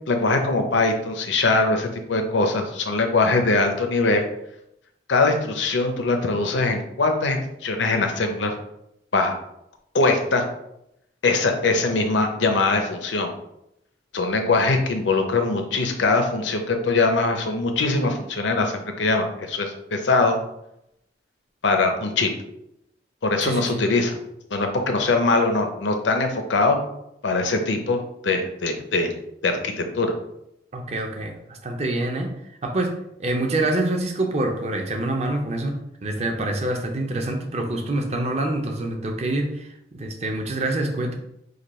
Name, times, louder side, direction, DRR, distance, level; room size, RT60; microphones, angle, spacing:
voice 1, 0.1-4.2 5.1-8.5 9.1-9.3 9.9-10.4 11.2-13.3 14.1-20.4 21.6-22.3 23.2-24.2 24.5-26.8 27.2-29.1 29.4-30.1, left 3 dB, 85° left, 4 dB, 0.7 m, -22 dB
voice 2, 23.4-23.8 30.7-32.3 32.6-32.9 33.2-39.5 39.9-41.2, right 2 dB, 35° right, 3 dB, 0.6 m, -26 dB
5.0 x 2.3 x 4.2 m, 0.82 s
head